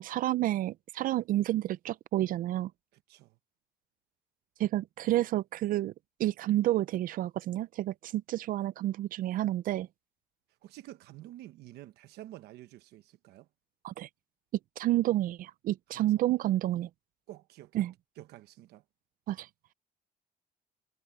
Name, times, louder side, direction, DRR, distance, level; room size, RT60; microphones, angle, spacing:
voice 1, 0.0-2.7 4.6-5.9 6.2-9.9 13.8-14.1 14.8-16.9 17.7-17.9 19.3-19.5, right 14 dB, 60° right, 0.4 m, -29 dB
voice 2, 10.6-13.5 15.9-16.2 17.3-17.8 18.2-18.8, right 15 dB, 85° right, 1.1 m, -49 dB
cardioid pair, 130°, 16 cm